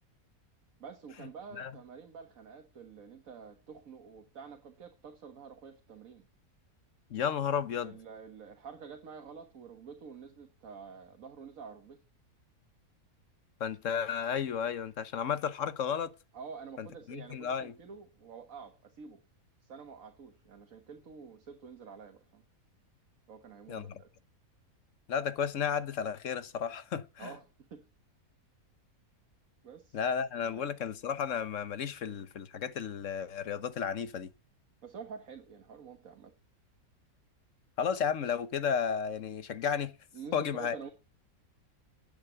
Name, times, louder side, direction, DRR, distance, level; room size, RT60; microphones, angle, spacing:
voice 1, 0.8-6.3 7.8-12.0 16.3-19.2 19.6-22.4 23.3-24.1 27.2-27.9 29.6-30.0 30.4-30.8 34.8-36.3 40.1-40.9, right 6 dB, 65° right, 1.7 m, -48 dB
voice 2, 7.1-8.0 13.6-16.1 16.8-17.7 23.7-24.0 25.1-27.3 29.9-34.3 37.8-39.9 40.3-40.8, left 7 dB, 60° left, 1.3 m, -33 dB
10.0 x 8.6 x 8.9 m
omnidirectional pair, 1.5 m